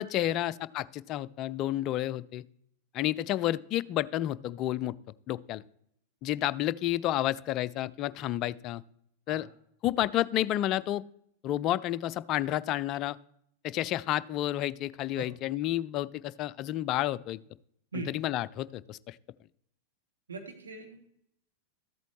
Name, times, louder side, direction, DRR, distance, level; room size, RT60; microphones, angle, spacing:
voice 1, 0.0-2.4 2.9-4.9 5.3-5.6 6.2-8.8 9.3-9.5 9.8-11.0 11.4-13.2 13.6-17.4 17.9-19.2, left 13 dB, 35° left, 18 dB, 0.3 m, -30 dB
voice 2, 20.3-21.0, right 3 dB, 75° right, 3 dB, 1.3 m, -40 dB
13.5 x 8.2 x 3.1 m, 0.73 s
figure-of-eight pair, 90°, 0 cm